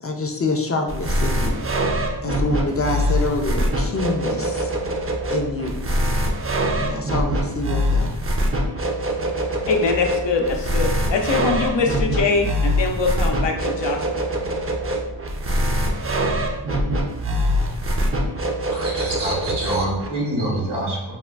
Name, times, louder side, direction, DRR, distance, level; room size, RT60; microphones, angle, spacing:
voice 1, 0.0-1.6 2.2-4.7 5.3-5.8 6.8-8.1, left 2 dB, 35° left, 3 dB, 0.4 m, -26 dB
sound 1, 0.9-20.1, equal, 35° right, 0.4 m, -23 dB
voice 2, 9.7-14.2, left 4 dB, 80° left, 2 dB, 0.6 m, -23 dB
voice 3, 18.7-21.1, right 1 dB, 80° right, -3 dB, 1.1 m, -26 dB
4.1 x 2.2 x 2.3 m, 1.0 s
wide cardioid pair, 45°, 42 cm